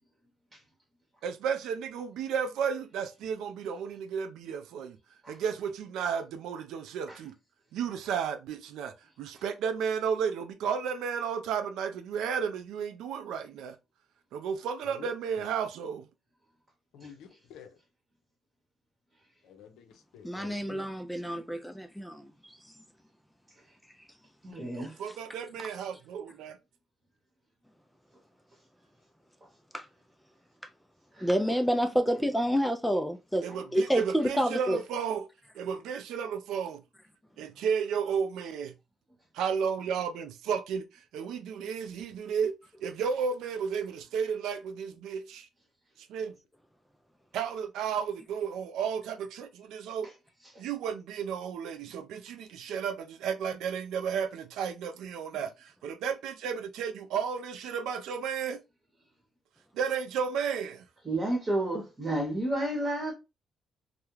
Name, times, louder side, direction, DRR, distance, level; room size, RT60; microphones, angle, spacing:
voice 1, 1.2-5.0 5.3-7.3 7.7-13.8 14.3-16.1 24.7-26.6 33.4-35.3 35.5-36.8 37.4-38.7 39.3-40.9 41.1-42.5 42.8-45.5 46.1-46.3 47.3-50.1 50.6-58.6 59.7-60.9, right 7 dB, 85° right, 0.3 m, -33 dB
voice 2, 16.9-17.7 19.4-20.9, left 7 dB, 85° left, 0.5 m, -49 dB
voice 3, 20.2-22.3 29.7-29.9 31.2-34.8, equal, 5° left, 0.3 m, -28 dB
voice 4, 24.4-25.0 31.1-31.6 33.5-33.6 61.0-63.1, right 1 dB, 35° right, 0.9 m, -31 dB
2.3 x 2.1 x 3.0 m
cardioid pair, 90°, 0 cm